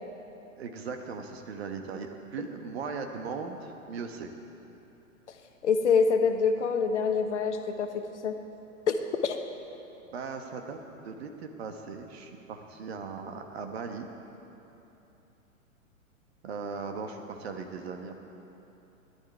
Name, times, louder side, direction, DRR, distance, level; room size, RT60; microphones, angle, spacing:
voice 1, 0.6-4.3 10.1-10.8 11.0-14.1 16.4-18.1, right 5 dB, 50° right, 5 dB, 1.3 m, -38 dB
voice 2, 5.6-8.3 8.9-9.0 9.2-9.4, left 5 dB, 55° left, 6 dB, 1.1 m, -25 dB
17.5 x 11.0 x 4.6 m, 3.0 s
figure-of-eight pair, 115°, 41 cm